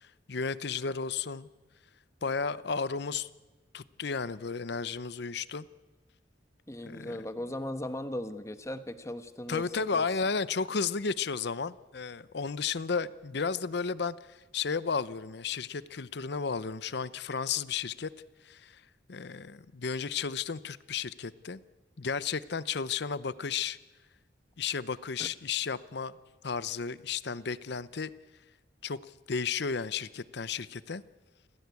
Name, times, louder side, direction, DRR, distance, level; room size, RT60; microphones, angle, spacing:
voice 1, 0.0-1.5 2.2-3.3 3.7-5.7 6.8-7.2 9.5-18.1 18.4-18.8 19.1-21.6 22.0-23.8 24.6-26.2 26.4-28.1 28.8-29.0 29.3-31.0, left 5 dB, 60° left, 16 dB, 0.7 m, -33 dB
voice 2, 6.7-9.7 9.9-10.1 25.2-25.3, left 1 dB, 15° left, 10 dB, 1.1 m, -37 dB
28.5 x 15.5 x 8.3 m, 1.2 s
head